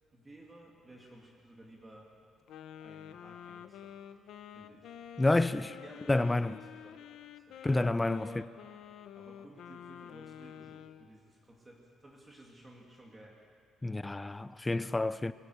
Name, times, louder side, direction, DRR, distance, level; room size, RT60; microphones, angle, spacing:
voice 1, 0.1-2.1 2.7-3.9 4.5-7.0 7.5-7.6 8.1-13.4 13.8-14.2, right 1 dB, 15° right, 2.5 m, -55 dB
Wind instrument woodwind instrument, 2.5-11.1, left 9 dB, 65° left, 0.8 m, -49 dB
voice 2, 5.2-5.7 6.1-6.5 7.6-8.3 13.8-15.3, left 2 dB, 10° left, 0.5 m, -28 dB
21.5 x 16.0 x 8.0 m
cardioid pair, 145°, 0 cm